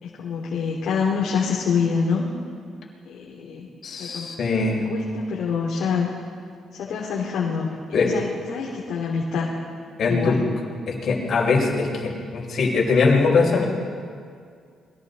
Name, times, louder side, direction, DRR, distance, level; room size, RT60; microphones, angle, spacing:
voice 1, 0.0-2.3 3.0-3.7 3.9-4.3 4.9-6.1 6.7-9.5 10.1-10.5, left 6 dB, 75° left, -3 dB, 3.2 m, -26 dB
voice 2, 3.8-4.8 7.9-8.1 10.0-10.4 10.9-13.7, left 4 dB, 60° left, -1 dB, 5.4 m, -21 dB
28.5 x 22.0 x 4.2 m, 2.2 s
cardioid pair, 105°, 0 cm